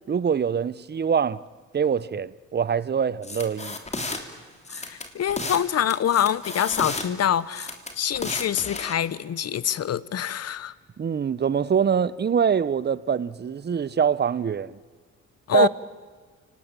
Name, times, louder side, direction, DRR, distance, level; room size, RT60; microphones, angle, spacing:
voice 1, 0.1-1.4 1.7-3.8 11.0-14.8 15.5-15.7, right 7 dB, 35° right, 0.9 m, -24 dB
sound 1, 3.2-4.2 4.6-5.6 5.9-7.1 7.5-8.9, left 2 dB, 20° left, 3.2 m, -33 dB
voice 2, 4.7-10.7 15.5-15.7, left 10 dB, 55° left, 1.1 m, -25 dB
28.5 x 19.0 x 9.0 m
cardioid pair, 90°, 30 cm